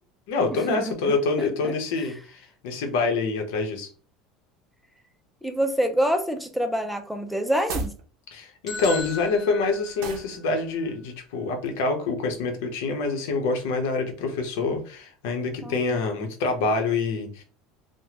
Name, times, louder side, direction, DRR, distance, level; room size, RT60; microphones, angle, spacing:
voice 1, 0.3-3.9 8.3-17.4, left 3 dB, 85° left, 4 dB, 0.9 m, -26 dB
voice 2, 5.4-7.9 15.6-15.9, equal, ahead, 5 dB, 0.5 m, -26 dB
sound 1, 7.6-8.0 10.0-10.3, right 4 dB, 80° right, 0.7 m, -32 dB
sound 2, 8.7-10.6, left 3 dB, 45° left, 1.0 m, -37 dB
3.3 x 2.2 x 2.9 m, 0.39 s
cardioid pair, 145°, 0 cm